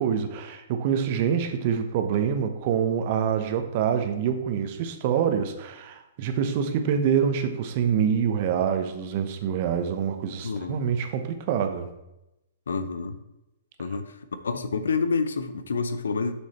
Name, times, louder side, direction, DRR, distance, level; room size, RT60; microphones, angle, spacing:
voice 1, 0.0-11.9, right 7 dB, 50° right, 7 dB, 0.9 m, -26 dB
voice 2, 10.4-10.9 12.7-13.2 13.8-14.0 14.4-16.3, left 4 dB, 80° left, 10 dB, 0.6 m, -28 dB
6.4 x 6.2 x 4.3 m, 0.91 s
hypercardioid pair, 120°, 0 cm